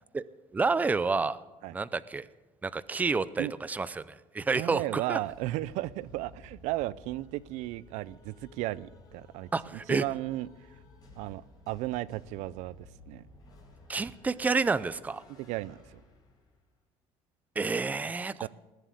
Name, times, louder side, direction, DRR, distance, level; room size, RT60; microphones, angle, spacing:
voice 1, 0.5-1.4 1.7-2.3 2.6-5.2 9.5-10.0 13.9-15.2 17.6-18.5, right 4 dB, 15° right, 0.5 m, -29 dB
voice 2, 4.6-10.5 11.2-13.2 15.4-16.0 18.4-18.5, right 17 dB, 80° right, 0.5 m, -35 dB
sound 1, 5.2-16.6, left 2 dB, 35° left, 5.6 m, -55 dB
19.5 x 7.6 x 8.3 m
cardioid pair, 135°, 12 cm